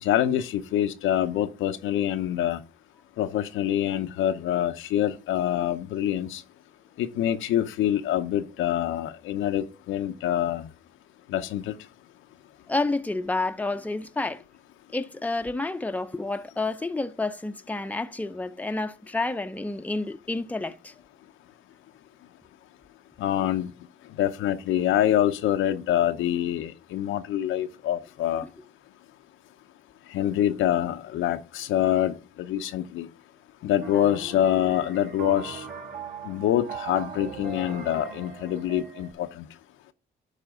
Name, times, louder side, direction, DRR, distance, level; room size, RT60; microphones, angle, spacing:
voice 1, 0.0-2.6 3.2-6.4 7.0-10.7 11.3-11.7 23.2-23.7 24.2-28.4 30.1-33.1 33.6-35.6 36.2-39.5, left 11 dB, 85° left, 0.8 m, -25 dB
voice 2, 12.7-14.4 14.9-20.9, left 2 dB, 10° left, 0.8 m, -29 dB
sound 1, 33.8-39.1, right 5 dB, 50° right, 2.9 m, -39 dB
12.0 x 5.0 x 3.7 m
cardioid pair, 90°, 20 cm